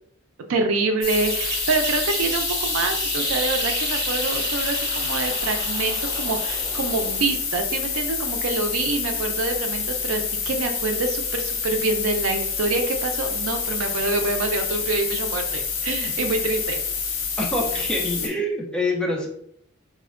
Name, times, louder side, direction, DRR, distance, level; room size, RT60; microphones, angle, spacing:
voice 1, 0.5-16.8 17.7-17.8, right 3 dB, 80° right, 5 dB, 0.5 m, -26 dB
sound 1, 1.0-18.3, left 5 dB, 70° left, 0.8 m, -28 dB
sound 2, 1.1-7.4, right 1 dB, 55° right, 1.1 m, -30 dB
voice 2, 17.4-19.3, left 1 dB, 5° left, -2 dB, 0.5 m, -25 dB
4.2 x 2.1 x 2.4 m, 0.68 s
head